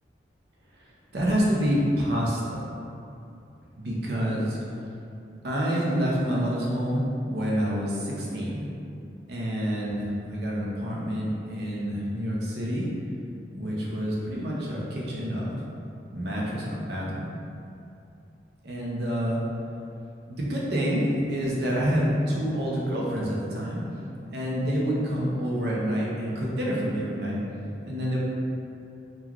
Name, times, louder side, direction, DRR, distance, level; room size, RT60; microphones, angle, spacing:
voice 1, 1.1-2.6 3.8-4.6 5.4-8.6 9.3-12.9 13.5-15.6 16.1-17.3 18.6-19.4 20.3-23.8 24.3-27.4 27.8-28.2, equal, 65° right, -5 dB, 0.5 m, -27 dB
3.2 x 2.2 x 2.3 m, 2.6 s
head